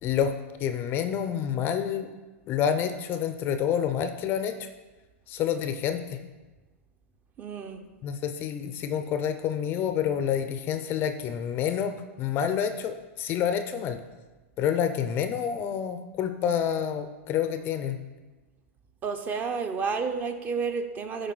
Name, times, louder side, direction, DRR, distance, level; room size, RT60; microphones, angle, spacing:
voice 1, 0.0-0.3 0.6-2.1 2.5-4.7 5.3-6.2 8.0-14.0 14.6-18.0, left 8 dB, 30° left, 0.5 m, -28 dB
voice 2, 7.4-7.9 19.0-21.3, right 5 dB, 20° right, 0.6 m, -31 dB
8.3 x 3.8 x 6.0 m
hypercardioid pair, 145°, 8 cm